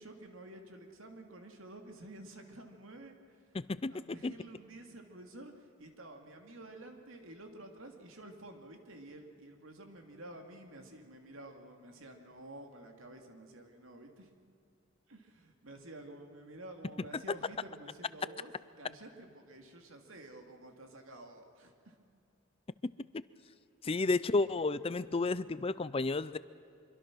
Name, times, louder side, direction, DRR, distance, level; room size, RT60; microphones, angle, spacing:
voice 1, 0.0-14.3 15.1-18.5 18.8-22.0, right 1 dB, 75° right, 4 dB, 2.6 m, -51 dB
voice 2, 3.5-3.9 4.2-4.3 23.8-26.4, left 3 dB, 25° left, 16 dB, 0.5 m, -31 dB
25.5 x 23.5 x 6.3 m, 2.5 s
head